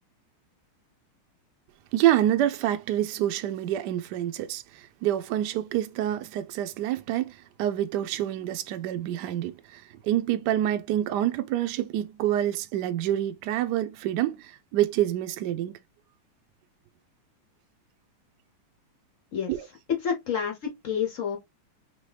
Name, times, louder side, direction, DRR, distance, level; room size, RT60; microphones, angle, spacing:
voice 1, 1.9-15.8 19.5-19.7, right 12 dB, 75° right, 1.0 m, -27 dB
voice 2, 19.9-21.4, left 7 dB, 70° left, 0.7 m, -28 dB
4.7 x 2.9 x 3.2 m
omnidirectional pair, 2.3 m